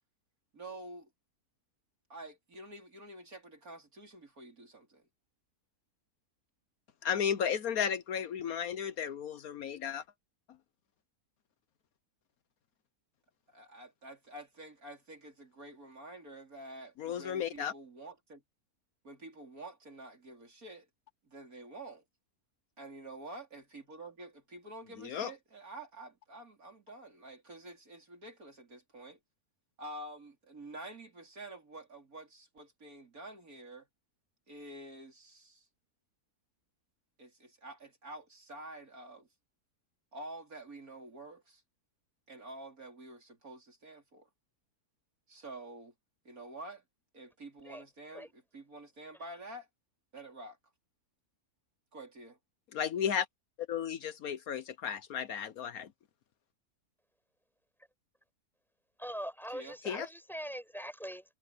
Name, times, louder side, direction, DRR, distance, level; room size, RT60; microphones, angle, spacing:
voice 1, 0.5-1.1 2.1-5.1 13.5-18.4 19.0-20.9 21.2-22.0 22.8-29.2 29.8-33.9 34.5-35.7 37.2-39.3 40.1-41.6 42.3-44.3 45.3-45.9 46.2-46.8 47.1-49.7 50.1-50.6 51.9-52.4 59.5-59.8, right 2 dB, 65° right, 4.7 m, -48 dB
voice 2, 7.0-10.0 17.0-17.7 25.0-25.3 52.7-53.3 53.7-55.9 59.9-60.1, left 8 dB, 70° left, 1.3 m, -34 dB
voice 3, 59.0-61.2, equal, ahead, 5.2 m, -42 dB
omnidirectional pair, 1.6 m